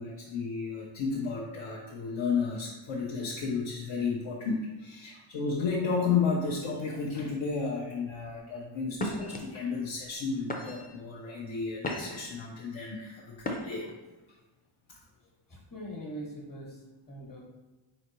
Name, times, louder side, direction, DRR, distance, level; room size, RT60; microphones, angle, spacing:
voice 1, 0.0-13.9, left 5 dB, 75° left, -4 dB, 0.8 m, -32 dB
sound 1, 8.4-8.5 8.9-9.4 10.0-10.2 10.5-11.0 11.5-12.3 13.4-13.9, left 1 dB, 20° left, 0.4 m, -35 dB
voice 2, 15.2-17.4, equal, 40° left, -2 dB, 1.4 m, -43 dB
4.4 x 3.9 x 3.0 m, 1.1 s
wide cardioid pair, 145°, 50 cm